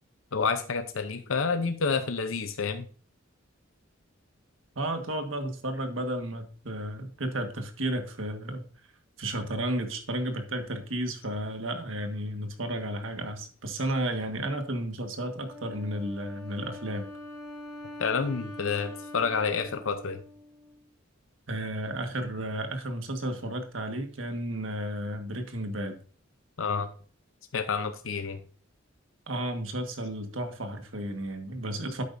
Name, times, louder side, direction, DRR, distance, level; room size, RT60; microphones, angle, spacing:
voice 1, 0.3-2.8 18.0-20.2 26.6-26.9 27.5-28.4, left 5 dB, 80° left, 8 dB, 0.7 m, -29 dB
voice 2, 4.7-8.6 9.2-17.1 21.5-26.0 29.3-32.0, right 1 dB, 70° right, 6 dB, 1.6 m, -33 dB
Wind instrument woodwind instrument, 15.5-20.9, left 1 dB, 5° left, 4.8 m, -44 dB
10.5 x 8.4 x 2.6 m, 0.42 s
head